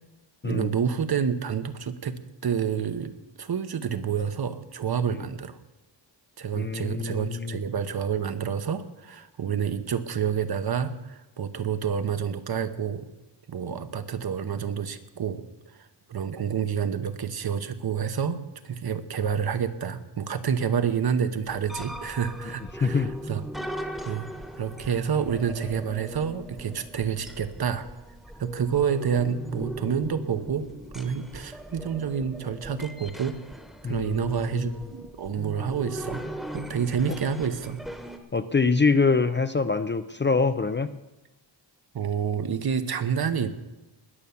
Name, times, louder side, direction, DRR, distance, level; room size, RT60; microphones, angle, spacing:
voice 1, 0.4-5.6 6.4-13.1 13.5-23.8 24.0-24.3 24.6-27.9 28.4-30.7 30.9-33.4 33.8-36.2 36.5-37.8 41.9-43.5, right 7 dB, 55° right, 10 dB, 1.0 m, -28 dB
voice 2, 6.5-7.6 22.8-23.1 33.8-34.7 38.3-40.9, left 4 dB, 25° left, 11 dB, 0.4 m, -25 dB
sound 1, 21.5-38.2, right 1 dB, ahead, 1.1 m, -39 dB
20.0 x 7.0 x 7.0 m, 1.0 s
wide cardioid pair, 160°, 43 cm